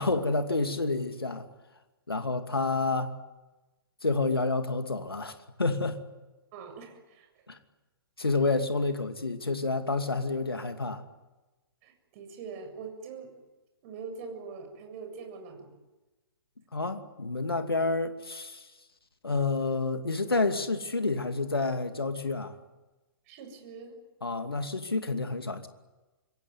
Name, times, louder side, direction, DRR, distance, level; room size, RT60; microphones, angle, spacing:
voice 1, 0.0-1.5 2.1-3.1 4.0-6.0 7.5-7.6 8.2-11.0 16.7-18.7 19.2-22.6 24.2-25.7, left 3 dB, 80° left, 8 dB, 2.6 m, -29 dB
voice 2, 6.5-7.3 11.8-13.3 13.8-15.8 23.3-24.0, right 5 dB, 35° right, 5 dB, 7.4 m, -43 dB
26.0 x 23.5 x 9.5 m, 1.1 s
figure-of-eight pair, 120°, 12 cm